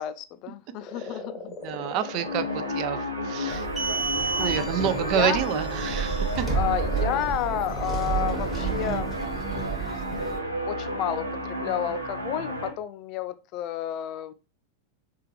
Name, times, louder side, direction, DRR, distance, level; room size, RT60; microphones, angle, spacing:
voice 1, 0.0-1.4 4.4-4.6 5.1-5.4 6.5-9.7 10.6-14.3, left 11 dB, 40° left, 0.3 m, -31 dB
sound 1, 0.7-9.2 9.9-10.9, left 4 dB, 25° left, 0.9 m, -41 dB
voice 2, 1.6-3.7 3.9-4.1 4.4-6.5, right 10 dB, 40° right, 0.4 m, -29 dB
sound 2, 1.6-12.7, equal, 85° right, 0.8 m, -32 dB
sound 3, 3.5-10.4, right 5 dB, 15° right, 1.3 m, -30 dB
4.3 x 2.4 x 3.2 m
figure-of-eight pair, 90°, 0 cm